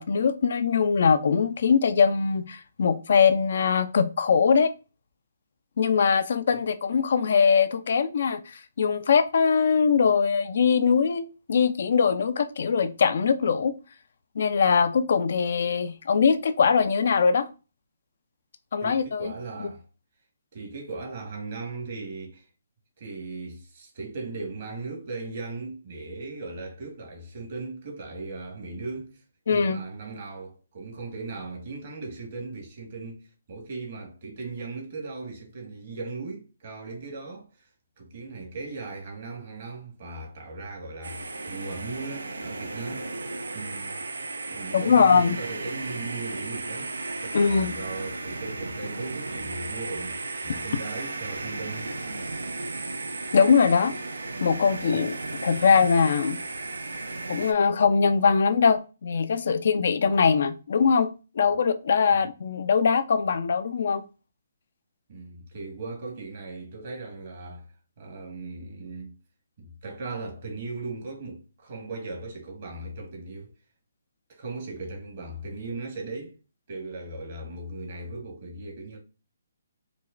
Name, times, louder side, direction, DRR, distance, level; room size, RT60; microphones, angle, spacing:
voice 1, 0.0-4.7 5.8-13.7 14.4-17.5 18.7-19.3 29.5-29.8 44.7-45.4 47.3-47.7 53.3-53.9 54.4-56.4 57.3-61.1 61.4-64.1, left 6 dB, 60° left, 0.4 m, -22 dB
voice 2, 18.8-19.8 20.5-22.5 23.0-29.2 29.5-33.2 33.5-37.7 38.0-43.1 43.5-44.0 44.5-51.9 62.1-62.3 65.1-67.7 68.0-69.1 69.6-73.5 74.3-76.3 76.7-79.0, right 3 dB, 50° right, 1.4 m, -38 dB
sound 1, 41.0-57.5, right 3 dB, 80° right, 0.5 m, -35 dB
4.9 x 2.1 x 2.4 m
figure-of-eight pair, 140°, 0 cm